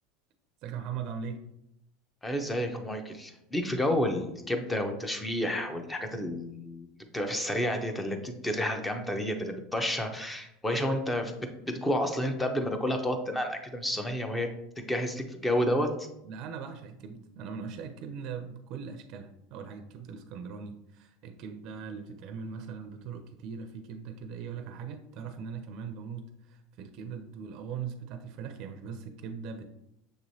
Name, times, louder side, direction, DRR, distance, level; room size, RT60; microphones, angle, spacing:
voice 1, 0.6-1.4 16.2-29.7, right 6 dB, 50° right, 7 dB, 0.4 m, -40 dB
voice 2, 2.2-6.9 7.1-11.3 11.7-14.5 14.8-16.1, left 1 dB, 10° left, 5 dB, 0.6 m, -30 dB
6.4 x 3.0 x 2.7 m, 0.81 s
supercardioid pair, 125°, 0 cm